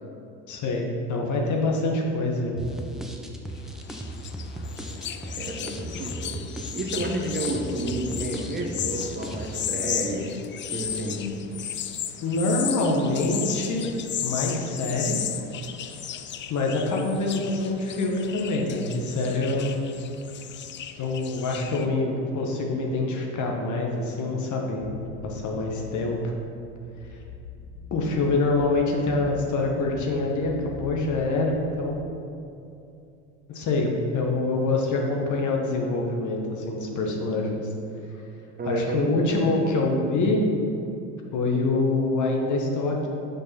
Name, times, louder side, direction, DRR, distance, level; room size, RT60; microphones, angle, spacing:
voice 1, 0.5-2.7 11.2-11.4 12.2-13.9 14.2-15.2 16.5-19.7 21.0-24.9 25.2-26.3 27.0-27.2 27.9-32.0 33.5-37.6 38.6-40.4 41.3-43.1, left 2 dB, 50° left, 0 dB, 1.3 m, -25 dB
sound 1, 2.6-9.7, right 1 dB, ahead, 0.7 m, -37 dB
sound 2, 3.6-21.9, left 9 dB, 30° left, 0.4 m, -35 dB
voice 2, 5.4-6.3 6.7-10.3 10.7-11.2 38.6-39.0, right 2 dB, 25° right, 1 dB, 1.1 m, -30 dB
sound 3, 24.8-32.3, left 3 dB, 85° left, 0.7 m, -43 dB
6.4 x 5.2 x 4.4 m, 2.7 s
hypercardioid pair, 75°, 38 cm